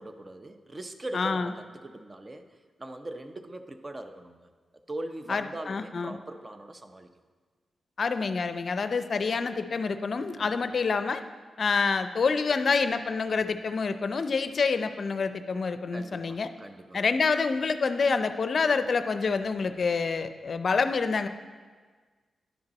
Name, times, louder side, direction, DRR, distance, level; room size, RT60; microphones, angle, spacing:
voice 1, 0.0-2.5 2.8-4.5 4.9-7.1 10.4-10.6 15.9-17.0, right 1 dB, 30° right, 7 dB, 0.7 m, -41 dB
voice 2, 1.1-1.5 5.3-6.2 8.0-11.2 11.6-16.5 16.9-21.3, left 4 dB, 60° left, 10 dB, 0.5 m, -27 dB
11.0 x 5.2 x 4.1 m, 1.5 s
cardioid pair, 60°, 0 cm